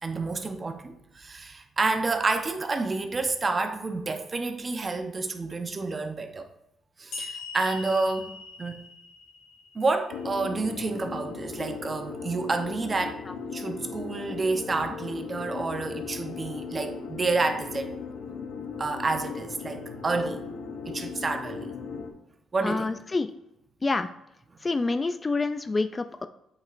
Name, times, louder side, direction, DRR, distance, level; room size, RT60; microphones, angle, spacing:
voice 1, 0.0-6.5 7.0-8.8 9.7-13.2 13.5-18.0 18.8-20.4 20.8-21.8 22.5-23.0, right 3 dB, 30° right, 7 dB, 0.8 m, -29 dB
sound 1, 7.1-10.5, left 4 dB, 70° left, 1.9 m, -41 dB
sound 2, 10.1-22.1, left 5 dB, 85° left, 0.8 m, -37 dB
voice 2, 22.6-23.3 23.8-24.1 24.6-26.3, left 3 dB, 25° left, 10 dB, 0.3 m, -27 dB
8.3 x 5.2 x 2.5 m, 0.83 s
cardioid pair, 90°, 0 cm